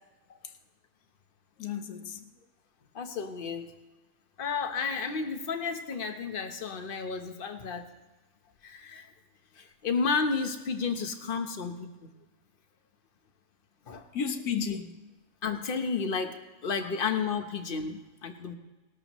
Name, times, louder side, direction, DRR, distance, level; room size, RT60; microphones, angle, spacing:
voice 1, 1.6-2.2 14.1-15.0 16.8-17.1, left 6 dB, 75° left, 1.4 m, -34 dB
voice 2, 2.9-3.7 4.4-7.8 8.6-9.1 9.6-12.1 13.9-14.1 15.4-16.4 16.6-18.6, left 5 dB, 40° left, 1.0 m, -32 dB
19.5 x 12.5 x 3.0 m
omnidirectional pair, 1.6 m